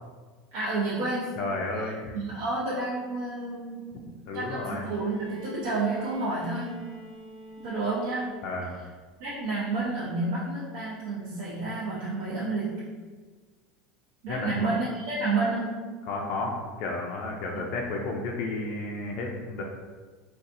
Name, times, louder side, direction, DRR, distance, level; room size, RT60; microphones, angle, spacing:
voice 1, 0.5-1.4 2.1-3.9 4.3-6.8 7.6-8.4 9.2-12.9 14.2-15.9 17.5-17.7, right 3 dB, 60° right, -8 dB, 0.7 m, -30 dB
voice 2, 1.4-2.1 4.3-4.9 8.4-8.8 14.3-14.7 16.1-19.6, left 2 dB, 45° left, -1 dB, 0.3 m, -32 dB
Bowed string instrument, 4.6-8.6 9.8-9.9, right 2 dB, 80° right, 1.5 m, -46 dB
3.9 x 2.3 x 2.5 m, 1.4 s
supercardioid pair, 175°, 0 cm